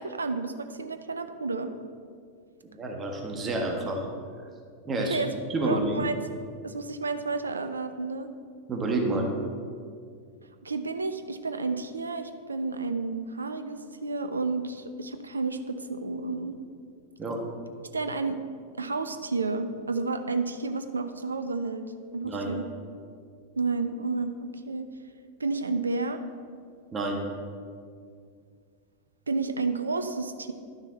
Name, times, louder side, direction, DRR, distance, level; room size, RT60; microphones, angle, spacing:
voice 1, 0.0-1.7 5.1-6.2 6.6-8.3 10.6-16.6 17.9-18.4 18.8-22.6 23.6-24.9 25.4-26.2 29.3-30.5, right 3 dB, 75° right, 9 dB, 0.5 m, -31 dB
voice 2, 2.6-4.1 4.8-5.2 5.5-6.0 8.7-9.3 17.2-17.4 22.2-22.5 26.9-27.2, right 2 dB, 20° right, 1 dB, 1.4 m, -29 dB
11.5 x 6.2 x 4.0 m, 2.2 s
figure-of-eight pair, 90°, 0 cm